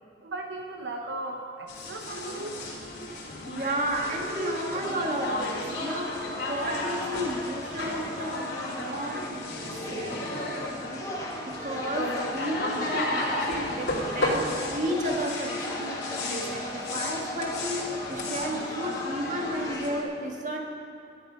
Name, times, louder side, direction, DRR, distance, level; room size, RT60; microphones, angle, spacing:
voice 1, 0.2-2.8, right 2 dB, 75° right, 2 dB, 0.8 m, -37 dB
sound 1, 1.7-19.9, left 1 dB, 65° left, 3.0 m, -34 dB
voice 2, 3.5-11.2 11.5-16.0 16.3-20.6, right 1 dB, 45° right, 0 dB, 1.6 m, -33 dB
sound 2, 4.0-20.0, left 1 dB, 20° left, 1.4 m, -38 dB
13.0 x 11.0 x 5.6 m, 2.8 s
head